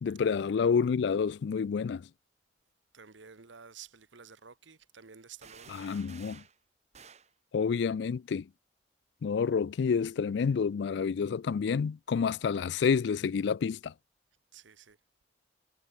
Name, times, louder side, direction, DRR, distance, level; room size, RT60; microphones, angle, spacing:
voice 1, 0.0-2.1 5.7-6.4 7.5-8.5 9.2-13.9, left 6 dB, 65° left, 0.3 m, -29 dB
voice 2, 2.9-5.8 14.5-15.0, right 6 dB, 85° right, 1.3 m, -52 dB
sound 1, 5.4-6.6 6.9-7.3, right 6 dB, 35° right, 3.1 m, -52 dB
head